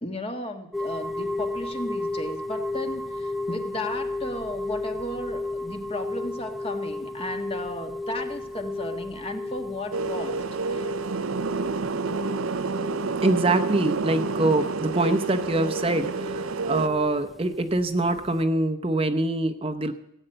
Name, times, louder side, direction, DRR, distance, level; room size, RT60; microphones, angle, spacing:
voice 1, 0.0-10.4 10.7-11.0, left 1 dB, 25° left, 6 dB, 1.5 m, -34 dB
sound 1, 0.7-18.4, left 2 dB, ahead, 0.5 m, -34 dB
sound 2, 9.9-16.9, right 4 dB, 90° right, 0.7 m, -29 dB
voice 2, 13.2-19.9, right 2 dB, 25° right, 6 dB, 0.8 m, -24 dB
17.5 x 9.2 x 7.9 m, 0.82 s
head